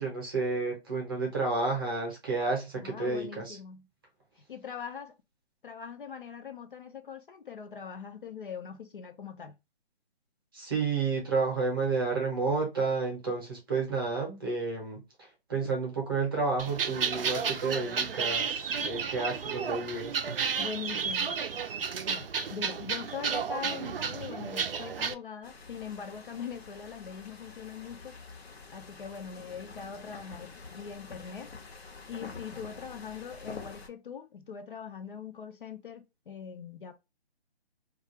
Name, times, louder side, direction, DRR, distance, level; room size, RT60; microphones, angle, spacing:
voice 1, 0.0-3.6 10.5-20.3, right 4 dB, 20° right, 0.7 m, -31 dB
voice 2, 2.8-3.9 4.5-5.1 5.6-9.6 20.6-21.4 22.1-28.2 28.7-31.5 32.1-36.9, left 7 dB, 55° left, 0.5 m, -42 dB
sound 1, 16.6-25.1, right 6 dB, 65° right, 0.5 m, -32 dB
sound 2, 25.4-33.9, left 4 dB, 70° left, 0.8 m, -47 dB
2.4 x 2.3 x 2.7 m
hypercardioid pair, 160°, 32 cm